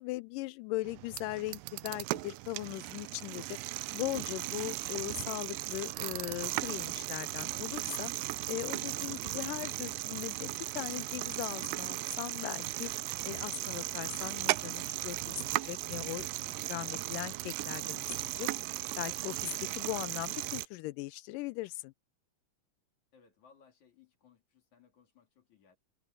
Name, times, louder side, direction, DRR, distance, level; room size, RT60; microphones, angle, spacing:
voice 1, 0.0-3.6 3.9-16.3 16.7-18.5 19.0-19.4 19.8-21.9, left 19 dB, 85° left, 2.2 m, -39 dB
sound 1, 0.8-20.7, right 19 dB, 90° right, 2.2 m, -37 dB
voice 2, 23.1-25.8, left 6 dB, 60° left, 4.5 m, -64 dB
omnidirectional pair, 3.7 m